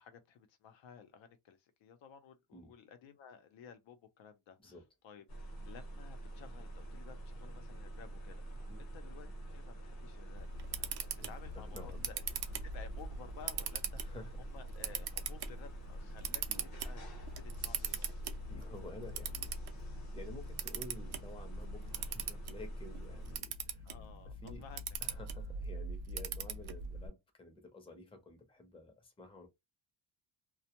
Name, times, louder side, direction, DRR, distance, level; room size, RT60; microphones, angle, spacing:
voice 1, 0.0-10.9 11.3-12.2 12.6-16.4 16.8-17.0 17.4-18.1 23.8-24.8 25.1-25.2, left 7 dB, 70° left, 0.7 m, -55 dB
sound 1, 5.3-23.4, right 2 dB, 50° left, 0.9 m, -46 dB
Camera, 10.4-27.1, right 5 dB, 55° right, 0.5 m, -42 dB
voice 2, 11.2-12.1 14.0-14.4 16.5-16.7 18.5-23.9 24.3-24.6 25.0-29.5, left 2 dB, 10° left, 0.6 m, -52 dB
2.2 x 2.1 x 2.8 m
cardioid pair, 160°, 46 cm